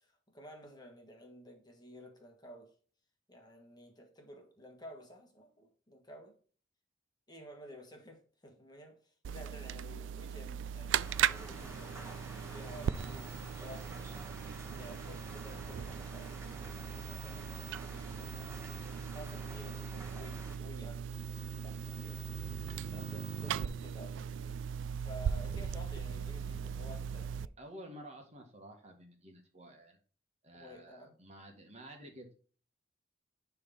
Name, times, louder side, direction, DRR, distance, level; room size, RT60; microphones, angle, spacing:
voice 1, 0.0-2.8 3.3-6.4 7.3-17.5 17.9-18.5 19.1-21.1 21.6-22.2 22.9-24.6 25.0-27.5 30.5-31.2, equal, 20° left, 1.4 m, -53 dB
sound 1, 9.2-27.5, right 8 dB, 75° right, 0.3 m, -38 dB
sound 2, 11.0-20.6, right 1 dB, 15° right, 1.4 m, -49 dB
voice 2, 27.6-30.0 30.4-32.3, right 1 dB, 35° right, 1.8 m, -51 dB
10.5 x 3.6 x 4.1 m
head